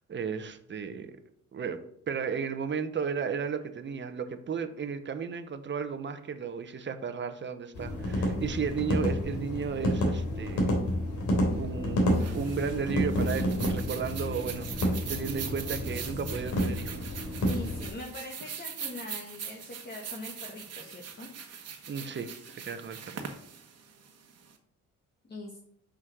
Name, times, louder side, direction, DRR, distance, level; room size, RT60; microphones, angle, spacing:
voice 1, 0.1-1.2 1.5-1.8 2.1-10.7 11.5-17.2 21.9-23.3, right 6 dB, 40° right, 9 dB, 1.0 m, -34 dB
sound 1, 7.7-17.9, equal, 75° left, 3.1 m, -30 dB
sound 2, 12.1-24.5, right 7 dB, 55° right, 1.4 m, -42 dB
voice 2, 17.5-21.3 25.2-25.6, left 2 dB, 35° left, -1 dB, 1.7 m, -42 dB
6.4 x 6.2 x 6.2 m, 0.67 s
cardioid pair, 90°, 30 cm